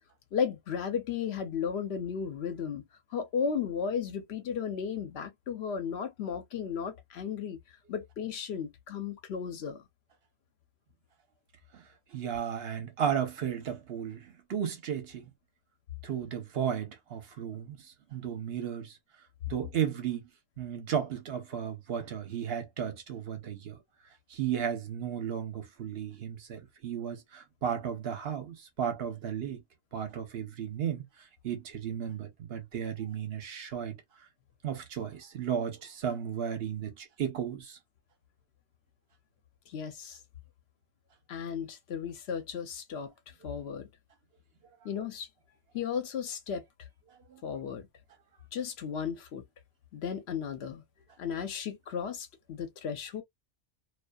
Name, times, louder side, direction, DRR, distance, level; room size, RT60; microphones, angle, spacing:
voice 1, 0.3-2.8 3.1-7.6 7.9-9.8 39.7-40.2 41.3-43.1 43.4-43.9 44.8-45.3 45.7-46.6 47.4-47.9 48.5-49.4 49.9-50.8 51.2-53.2, left 7 dB, 75° left, 0.9 m, -34 dB
voice 2, 12.1-15.3 16.0-17.8 18.1-19.0 19.5-20.2 20.6-23.8 24.3-29.6 29.9-31.1 31.4-34.0 34.6-37.8 47.3-47.4, right 8 dB, 70° right, 1.0 m, -34 dB
2.5 x 2.4 x 2.3 m
omnidirectional pair, 1.1 m